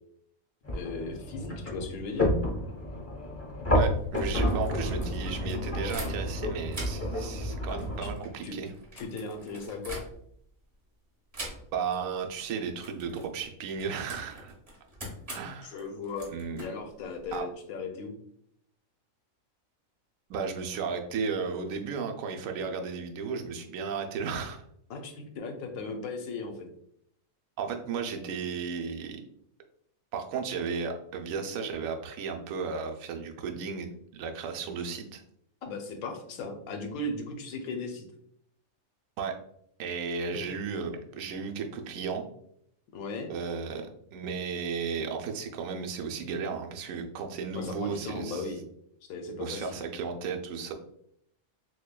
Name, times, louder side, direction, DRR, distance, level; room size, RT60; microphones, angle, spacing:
sound 1, 0.6-8.1, left 1 dB, 15° left, 0.6 m, -30 dB
voice 1, 0.7-2.3 7.7-8.1 8.4-8.5 8.9-10.0 15.6-16.3 16.6-18.1 24.9-26.7 35.6-38.0 42.9-43.3 47.5-48.6 49.1-49.8, left 3 dB, 80° left, 4 dB, 1.1 m, -37 dB
voice 2, 3.7-8.7 11.7-14.5 15.3-15.8 16.3-16.7 17.3-17.4 20.3-24.6 27.6-29.2 30.1-35.2 39.2-39.4 39.8-42.2 43.3-48.4 49.4-50.7, right 5 dB, 75° right, 3 dB, 1.0 m, -34 dB
sound 2, 4.0-6.4 6.7-10.5 11.3-12.0 12.3-12.5 12.8-17.4, right 1 dB, 30° right, 1.0 m, -43 dB
6.3 x 2.2 x 2.2 m, 0.71 s
omnidirectional pair, 1.5 m